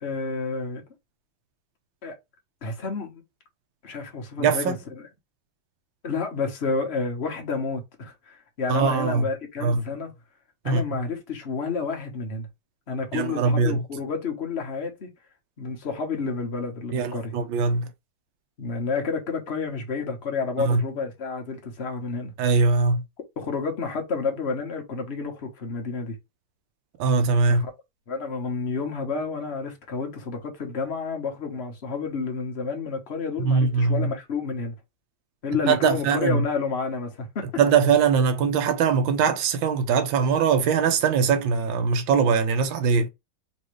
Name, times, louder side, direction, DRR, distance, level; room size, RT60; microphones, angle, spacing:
voice 1, 0.0-0.8 2.0-2.2 2.6-3.2 3.8-5.1 6.0-10.1 10.6-12.5 12.9-15.1 15.6-17.3 18.6-22.3 23.4-26.2 27.5-27.7 28.1-34.7 35.4-37.5, left 4 dB, 35° left, 1.2 m, -30 dB
voice 2, 4.4-4.8 8.7-9.2 9.6-9.8 10.6-10.8 13.1-13.8 16.9-17.9 20.6-20.8 22.4-23.0 27.0-27.6 33.4-34.1 35.7-36.4 37.6-43.1, right 5 dB, 75° right, 1.5 m, -21 dB
4.3 x 3.1 x 3.2 m
omnidirectional pair, 2.3 m